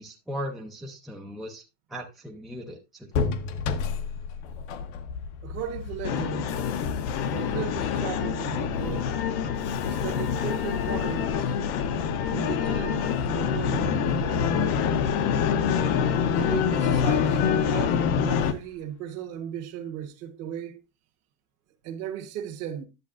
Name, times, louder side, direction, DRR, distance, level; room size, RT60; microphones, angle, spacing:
voice 1, 0.0-1.6 1.9-3.1, equal, ahead, 0.5 m, -37 dB
sound 1, 3.1-18.8, left 5 dB, 80° left, 1.1 m, -36 dB
voice 2, 5.4-6.5 7.3-9.1 9.8-11.6 12.3-15.1 16.4-20.8 21.8-22.9, right 9 dB, 40° right, 1.3 m, -36 dB
sound 2, 6.0-18.5, left 7 dB, 40° left, 0.7 m, -26 dB
10.5 x 7.4 x 2.5 m
supercardioid pair, 165°, 38 cm